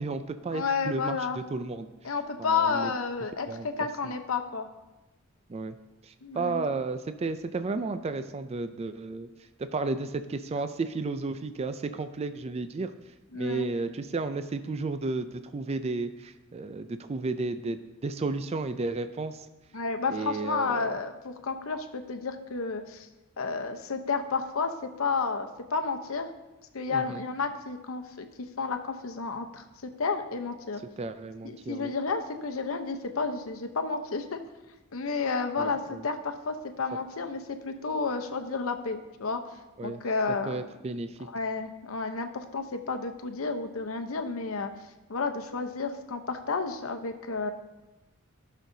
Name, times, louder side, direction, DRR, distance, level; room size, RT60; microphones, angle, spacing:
voice 1, 0.0-1.9 2.4-2.9 3.5-3.7 5.5-5.8 6.0-9.3 9.6-12.9 13.3-19.5 20.1-21.0 26.9-27.2 31.0-31.9 35.6-36.0 39.8-40.0 40.5-41.2, right 3 dB, 30° right, 10 dB, 0.3 m, -33 dB
voice 2, 0.5-1.4 2.0-4.7 6.2-6.6 13.3-13.7 19.7-23.1 23.4-24.7 25.0-26.3 26.7-28.3 28.6-29.6 30.0-30.8 31.7-34.4 34.9-39.4 39.8-40.7 41.3-44.7 45.1-47.5, left 4 dB, 85° left, 7 dB, 0.8 m, -31 dB
16.0 x 6.3 x 2.7 m, 1.1 s
head